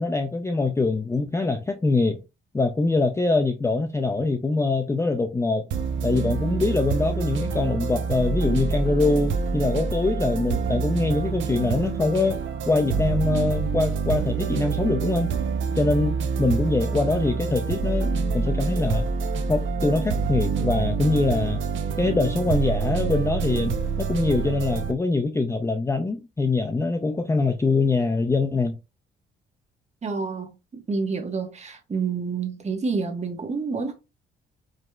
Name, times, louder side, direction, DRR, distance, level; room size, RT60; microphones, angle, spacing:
voice 1, 0.0-2.2 2.5-5.7 6.0-15.3 15.8-19.1 19.5-21.6 22.0-28.8, left 3 dB, 15° left, 0.4 m, -24 dB
sound 1, 5.7-24.9, right 5 dB, 75° right, 0.7 m, -26 dB
voice 2, 30.0-33.9, right 4 dB, 35° right, 1.2 m, -28 dB
5.0 x 2.9 x 2.3 m
cardioid pair, 90°, 20 cm